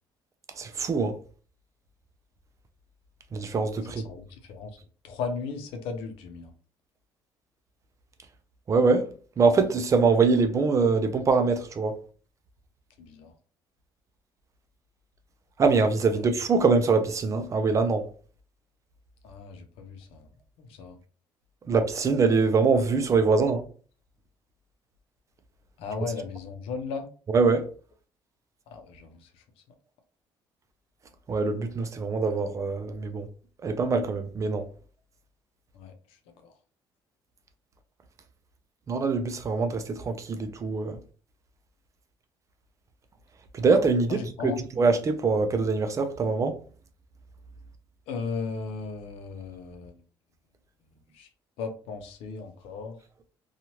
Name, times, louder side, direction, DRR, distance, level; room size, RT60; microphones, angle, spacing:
voice 1, 0.6-1.2 3.3-4.0 8.7-9.1 9.4-12.0 15.6-18.1 21.7-23.6 27.3-27.7 31.3-33.3 33.6-34.7 38.9-41.0 43.5-46.6, right 4 dB, 35° right, 0.5 m, -23 dB
voice 2, 3.9-4.7 5.0-6.5 13.0-13.3 16.1-16.2 19.2-20.3 20.6-21.0 25.8-27.1 28.7-29.4 35.7-36.5 44.1-44.7 48.1-50.0 51.1-51.3 51.6-53.0, left 5 dB, 90° left, 0.6 m, -36 dB
2.9 x 2.4 x 2.8 m
cardioid pair, 115°, 9 cm